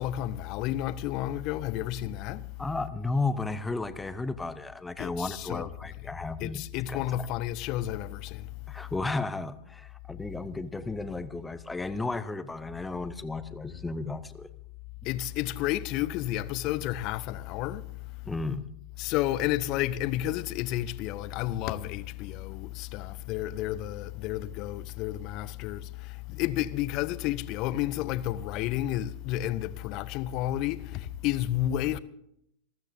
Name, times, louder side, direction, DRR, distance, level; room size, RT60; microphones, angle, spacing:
voice 1, 0.0-2.6 5.0-5.7 6.4-8.9 15.0-18.2 19.0-32.0, left 14 dB, 40° left, 0.7 m, -31 dB
voice 2, 2.6-6.6 6.9-7.3 8.7-14.5 18.2-18.6, left 3 dB, 10° left, 0.8 m, -33 dB
28.0 x 13.0 x 2.6 m
figure-of-eight pair, 90°, 0 cm